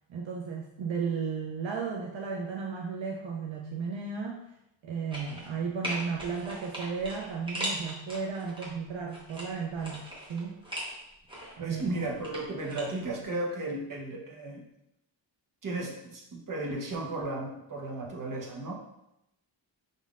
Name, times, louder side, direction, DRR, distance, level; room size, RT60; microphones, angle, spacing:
voice 1, 0.1-4.5 4.8-10.6 11.6-12.0, right 5 dB, 70° right, 0 dB, 0.6 m, -34 dB
sound 1, 5.1-5.5 5.8-8.7 9.1-10.9 11.3-12.8 13.1-13.2, equal, 10° right, 1.1 m, -38 dB
voice 2, 11.6-14.6 15.6-18.7, right 2 dB, 40° right, -1 dB, 0.9 m, -34 dB
5.1 x 3.7 x 2.4 m, 0.85 s
wide cardioid pair, 130°, 47 cm